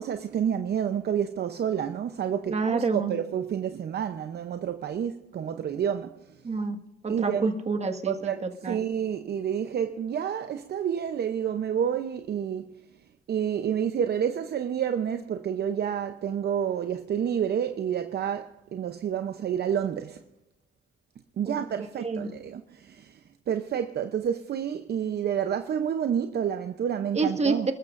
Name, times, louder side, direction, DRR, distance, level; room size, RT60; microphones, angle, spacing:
voice 1, 0.0-6.2 7.1-7.5 8.1-12.8 13.3-20.2 21.4-23.2 23.5-27.7, right 8 dB, 55° right, 0.7 m, -29 dB
voice 2, 2.5-3.1 6.4-6.8 7.0-8.8 21.5-21.6 22.0-22.3 27.2-27.7, right 4 dB, 35° right, 1.8 m, -28 dB
26.5 x 13.5 x 2.6 m
cardioid pair, 90°, 20 cm